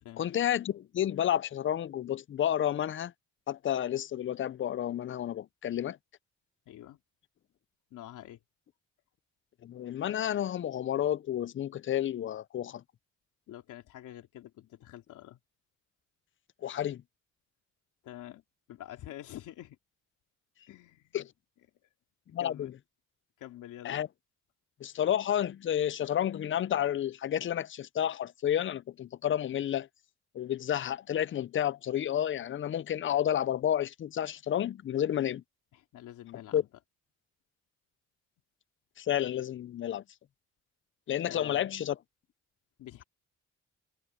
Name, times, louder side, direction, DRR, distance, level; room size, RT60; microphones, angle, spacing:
voice 1, 0.2-3.1 3.5-6.0 9.6-12.8 16.6-17.0 21.1-21.3 22.3-22.7 23.8-24.1 24.8-29.9 30.3-35.4 36.5-36.6 39.0-40.0 41.1-42.0, left 10 dB, 40° left, 0.5 m, -30 dB
voice 2, 6.6-7.0 7.9-8.4 13.5-15.4 18.0-18.4 18.7-19.8 20.7-21.2 22.4-22.7 23.4-24.0 35.7-36.7 41.3-41.7 42.8-43.0, left 13 dB, 85° left, 3.4 m, -47 dB
cardioid pair, 90°, 30 cm